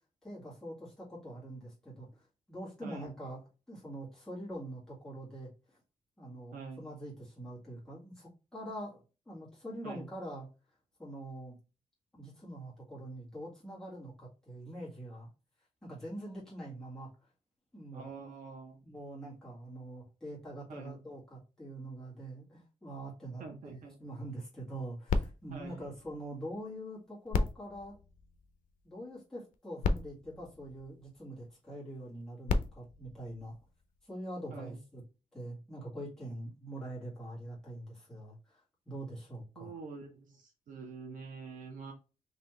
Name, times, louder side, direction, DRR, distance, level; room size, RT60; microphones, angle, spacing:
voice 1, 0.2-2.2 2.5-3.4 3.7-5.8 6.2-10.5 11.0-11.6 12.1-15.3 15.8-17.1 17.7-18.1 18.8-28.0 28.8-33.6 34.1-35.0 35.3-38.6 38.9-39.7, right 1 dB, 5° left, -7 dB, 1.8 m, -44 dB
voice 2, 2.8-3.1 6.5-6.9 9.8-10.1 17.9-18.8 20.7-21.0 23.4-24.0 25.5-25.9 34.5-34.8 39.6-41.9, right 4 dB, 80° right, 2 dB, 0.9 m, -46 dB
sound 1, 25.1-26.7 27.3-28.9 29.5-29.6 29.8-31.4 32.2-34.0 34.8-34.9, left 4 dB, 85° left, 0.6 m, -36 dB
4.1 x 2.9 x 3.2 m, 0.31 s
wide cardioid pair, 180°, 13 cm